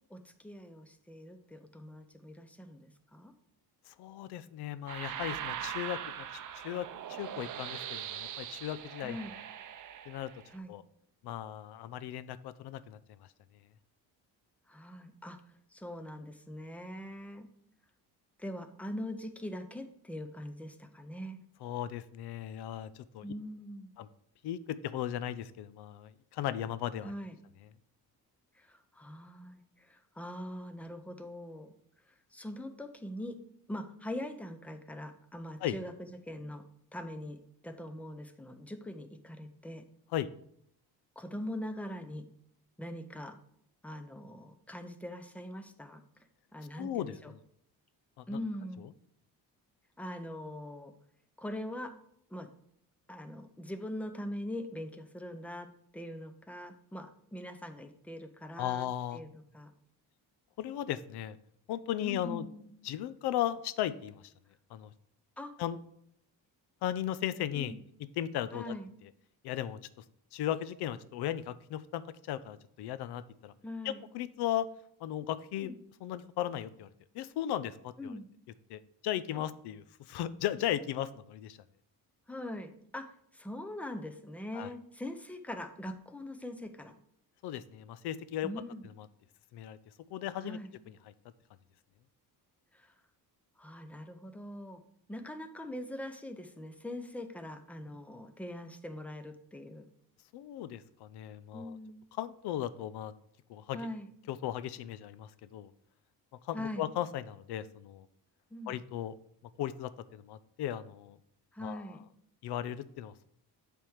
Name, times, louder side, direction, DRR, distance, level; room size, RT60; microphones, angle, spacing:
voice 1, 0.1-3.3 9.0-9.3 10.5-10.7 14.7-15.4 15.7-17.5 18.4-21.4 23.2-23.9 27.0-27.4 28.5-31.7 32.3-33.4 33.7-36.6 36.9-39.8 41.2-42.3 42.8-43.4 43.8-46.0 46.5-47.3 48.3-48.9 50.0-50.9 51.4-51.9 52.3-52.5 53.1-55.7 55.9-59.3 59.5-59.7 62.0-62.7 65.4-65.5 67.5-67.8 68.5-68.9 73.6-74.0 75.6-75.8 78.0-78.3 79.3-79.4 82.3-86.9 88.4-88.9 90.4-90.7 92.7-92.9 93.6-94.8 95.1-99.9 101.5-102.1 103.7-104.1 106.5-106.9 108.5-108.8 111.5-112.1, left 1 dB, 5° left, 8 dB, 0.6 m, -42 dB
voice 2, 3.9-9.2 10.1-10.3 10.7-10.8 11.2-13.0 21.6-23.2 24.0-24.1 24.4-27.1 35.6-35.8 40.1-40.3 46.8-47.1 48.2-48.3 58.6-59.2 60.6-61.4 61.7-62.5 62.8-64.2 64.7-64.9 65.6-65.8 66.8-67.7 68.2-68.7 69.4-69.8 70.3-73.5 73.8-74.7 75.0-75.7 76.0-76.9 77.1-78.2 78.7-81.6 84.5-84.7 87.4-88.5 89.5-89.8 90.1-90.6 100.3-101.8 102.2-103.1 103.5-103.8 104.3-105.7 106.4-108.1 108.7-109.1 109.6-111.2 111.6-111.8 112.4-113.3, left 11 dB, 75° left, 15 dB, 0.6 m, -36 dB
sound 1, 4.9-10.5, right 10 dB, 50° right, 0.6 m, -41 dB
7.4 x 3.5 x 6.3 m, 0.69 s
cardioid pair, 130°, 40 cm